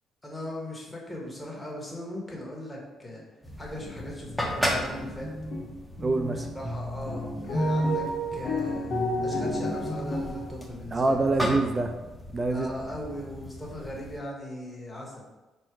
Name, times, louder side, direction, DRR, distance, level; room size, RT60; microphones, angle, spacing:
voice 1, 0.2-3.2 3.6-5.3 6.3-8.1 8.3-8.9 9.2-11.2 12.5-15.3, left 1 dB, 15° left, -3 dB, 1.2 m, -38 dB
sound 1, 3.4-14.2, equal, ahead, 0.7 m, -36 dB
sound 2, 3.8-4.0 4.3-5.6 6.0-10.5, equal, 75° left, 1.4 m, -31 dB
voice 2, 6.0-6.5 10.9-11.9 12.3-12.7, right 2 dB, 30° right, 6 dB, 0.4 m, -25 dB
4.4 x 2.1 x 4.5 m, 1.1 s
cardioid pair, 90°, 0 cm